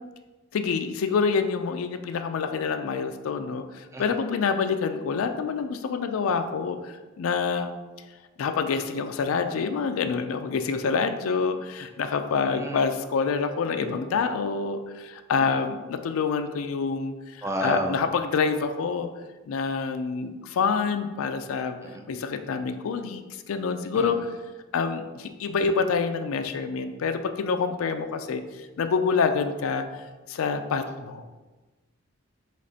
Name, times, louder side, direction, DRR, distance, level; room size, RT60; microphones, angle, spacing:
voice 1, 0.5-7.7 8.4-19.1 19.5-21.8 22.1-24.3 24.7-29.8 30.3-31.2, left 5 dB, 80° left, 8 dB, 0.4 m, -27 dB
voice 2, 12.4-12.8 17.4-18.0 21.8-22.0 24.0-24.2, right 1 dB, 15° right, 3 dB, 0.3 m, -31 dB
5.1 x 3.5 x 2.8 m, 1.2 s
head